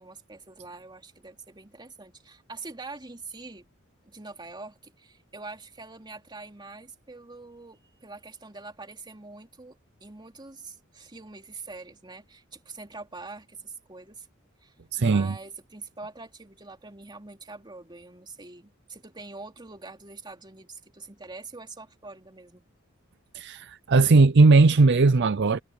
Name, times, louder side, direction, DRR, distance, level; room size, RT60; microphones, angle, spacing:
voice 1, 0.0-3.6 4.0-14.3 14.6-22.6, right 3 dB, 20° right, 3.0 m, -44 dB
voice 2, 14.9-15.4 23.3-25.6, right 3 dB, 55° right, 0.6 m, -18 dB
head